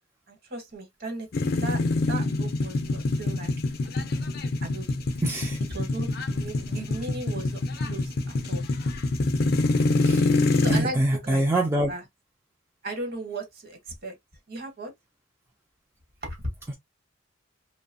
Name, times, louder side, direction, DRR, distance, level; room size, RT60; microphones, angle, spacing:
voice 1, 0.3-1.8 2.1-3.5 4.6-5.0 5.7-8.6 10.6-12.0 12.8-14.1 14.5-14.9 16.2-16.4, right 2 dB, 50° right, 1.1 m, -36 dB
sound 1, 1.3-10.8, left 2 dB, 50° left, 0.5 m, -25 dB
voice 2, 5.2-5.6 10.0-10.2 10.7-11.9, right 1 dB, 10° right, 0.3 m, -25 dB
2.8 x 2.1 x 2.6 m
head